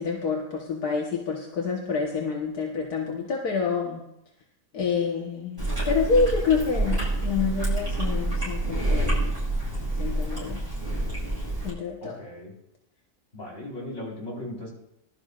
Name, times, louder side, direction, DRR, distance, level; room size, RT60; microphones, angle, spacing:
voice 1, 0.0-4.0 4.7-9.3 10.0-10.6 11.6-12.2, left 5 dB, 80° left, -1 dB, 1.8 m, -27 dB
Chewing mastication, 5.6-11.7, right 1 dB, 15° right, 6.3 m, -27 dB
voice 2, 12.0-12.5 13.3-14.7, left 1 dB, 40° left, -4 dB, 4.9 m, -37 dB
20.5 x 12.0 x 2.5 m, 0.82 s
omnidirectional pair, 1.6 m